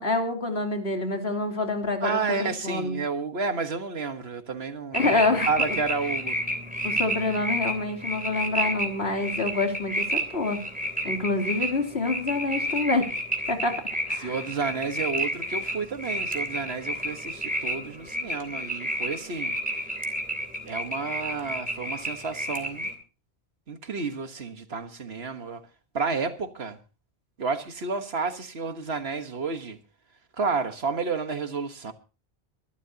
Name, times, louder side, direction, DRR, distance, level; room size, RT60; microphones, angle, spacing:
voice 1, 0.0-3.0 4.9-5.5 6.8-10.6 11.0-13.1 13.5-13.8 14.1-14.3, left 2 dB, 70° left, 3.2 m, -27 dB
voice 2, 2.0-6.4 14.2-19.6 20.6-22.9 23.7-25.6 25.9-26.8 27.4-29.8 30.4-31.9, right 4 dB, 70° right, 1.6 m, -31 dB
sound 1, 4.9-22.9, right 1 dB, 10° right, 3.0 m, -31 dB
23.5 x 12.5 x 2.8 m
omnidirectional pair, 1.1 m